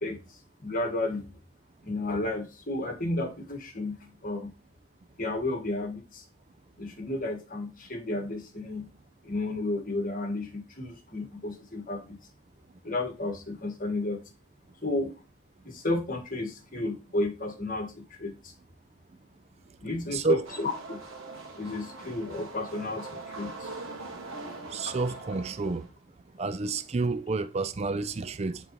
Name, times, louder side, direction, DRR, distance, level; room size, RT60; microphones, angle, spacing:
voice 1, 0.0-1.3 1.8-4.5 5.2-6.2 6.8-8.9 9.2-12.2 12.8-14.2 14.8-15.1 15.6-18.5 19.8-21.0 21.6-23.7 24.9-25.0, left 2 dB, 40° left, 1.5 m, -32 dB
voice 2, 20.1-20.4 24.7-25.9 26.4-28.6, right 3 dB, 30° right, 0.4 m, -29 dB
sound 1, 20.4-25.9, right 3 dB, 65° right, 1.7 m, -42 dB
10.5 x 3.7 x 3.0 m
head